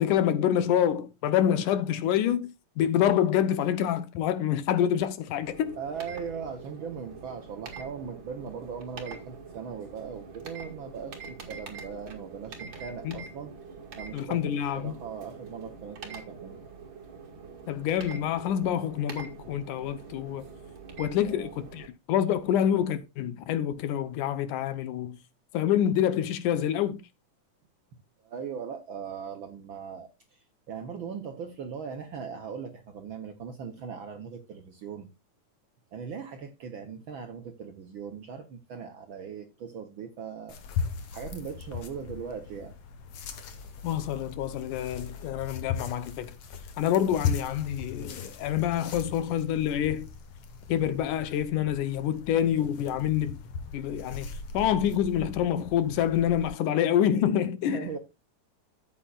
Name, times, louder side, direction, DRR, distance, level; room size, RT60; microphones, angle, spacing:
voice 1, 0.0-2.5 2.8-5.7 13.0-13.2 14.1-14.9 17.7-20.5 21.0-25.2 25.5-27.0 43.8-46.3 46.8-50.1 50.7-53.4 53.7-57.8, left 10 dB, 80° left, 2.4 m, -27 dB
sound 1, 5.4-21.9, right 5 dB, 40° right, 2.4 m, -44 dB
voice 2, 5.8-13.5 14.0-16.6 21.2-21.5 28.2-35.1 35.9-40.6 41.1-42.8 45.2-45.3 57.7-58.0, right 6 dB, 85° right, 1.1 m, -39 dB
sound 2, 40.5-56.5, left 6 dB, 60° left, 2.1 m, -38 dB
13.0 x 8.3 x 2.4 m
omnidirectional pair, 3.6 m